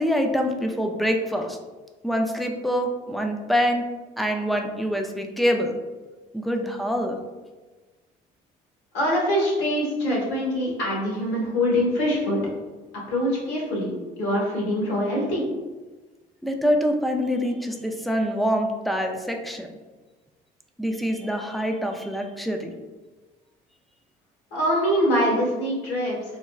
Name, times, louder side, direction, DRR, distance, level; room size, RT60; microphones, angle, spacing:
voice 1, 0.0-1.6 2.0-3.8 4.2-5.8 6.3-7.2 16.4-19.7 20.8-22.7, equal, ahead, 3 dB, 0.3 m, -25 dB
voice 2, 8.9-12.4 13.1-15.4 24.5-26.4, equal, 85° left, -5 dB, 1.4 m, -24 dB
4.0 x 2.2 x 2.3 m, 1.3 s
cardioid pair, 110°, 17 cm